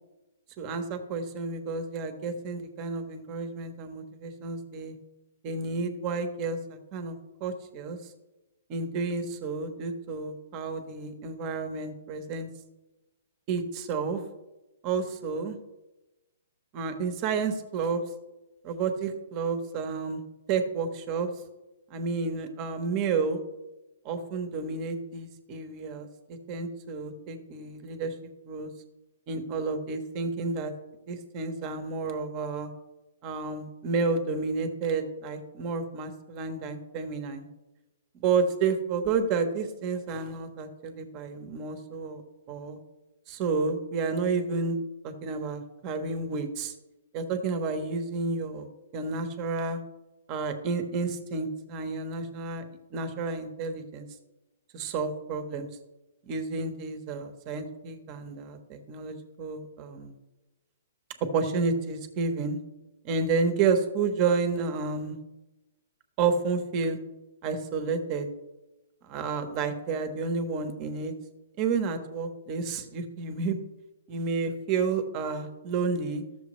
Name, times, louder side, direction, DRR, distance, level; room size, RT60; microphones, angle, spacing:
voice 1, 0.6-5.0 5.4-8.0 8.7-12.5 13.5-14.2 14.8-15.6 16.7-18.0 18.6-20.2 20.5-21.3 21.9-23.4 24.0-28.1 28.4-28.7 29.3-30.7 31.1-32.7 33.2-37.5 38.1-42.2 42.5-42.8 43.3-44.8 45.0-46.7 47.1-48.7 48.9-49.8 50.3-52.6 52.9-54.1 54.7-55.7 56.2-60.1 61.3-62.6 63.0-65.2 66.2-67.0 67.4-68.3 69.0-71.1 71.6-73.6 74.1-76.2, right 4 dB, 35° right, 7 dB, 1.2 m, -30 dB
13.5 x 7.0 x 3.1 m, 1.0 s
hypercardioid pair, 140°, 0 cm